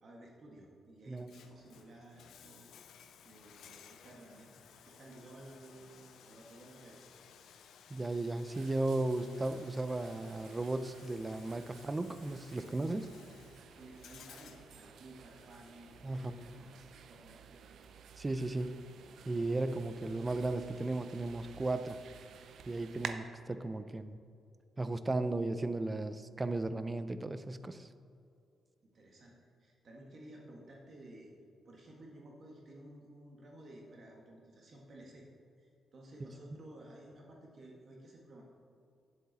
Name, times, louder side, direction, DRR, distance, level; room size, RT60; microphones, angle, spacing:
voice 1, 0.0-2.7 3.2-7.1 13.7-16.7 17.0-17.8 28.9-31.3 31.6-35.3 35.6-38.4, right 1 dB, 50° right, -1 dB, 1.7 m, -54 dB
Bathtub (filling or washing), 1.1-17.0, left 7 dB, 85° left, 0.6 m, -59 dB
voice 2, 7.9-13.1 16.0-16.3 18.2-18.7 19.3-22.0 22.7-24.2 24.8-27.9, right 2 dB, 20° right, 12 dB, 0.5 m, -35 dB
sound 1, 8.5-23.1, right 7 dB, 75° right, 0.5 m, -52 dB
10.0 x 7.9 x 4.1 m, 2.4 s
cardioid pair, 110°, 0 cm